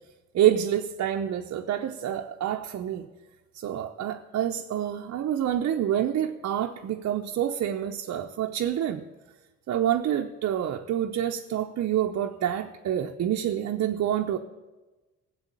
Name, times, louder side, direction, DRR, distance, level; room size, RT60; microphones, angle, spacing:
voice 1, 0.3-3.1 3.5-9.0 9.7-14.4, right 10 dB, 60° right, 3 dB, 0.7 m, -27 dB
14.5 x 7.7 x 8.3 m, 1.2 s
cardioid pair, 90°, 30 cm